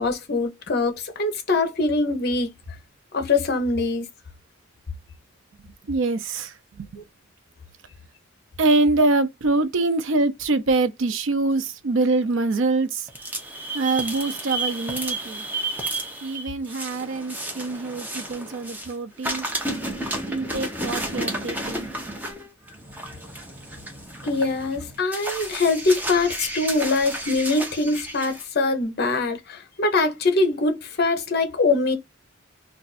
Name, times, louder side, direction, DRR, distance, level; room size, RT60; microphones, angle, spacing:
voice 1, 0.0-2.5 3.1-4.1 24.2-32.0, left 3 dB, 50° left, 0.7 m, -23 dB
voice 2, 5.9-7.0 8.6-13.1 13.7-15.4 16.2-19.5 20.3-21.9, right 3 dB, 65° right, 0.5 m, -24 dB
sound 1, 13.1-18.9 19.2-28.4, right 1 dB, 10° right, 0.6 m, -32 dB
2.4 x 2.3 x 4.0 m
head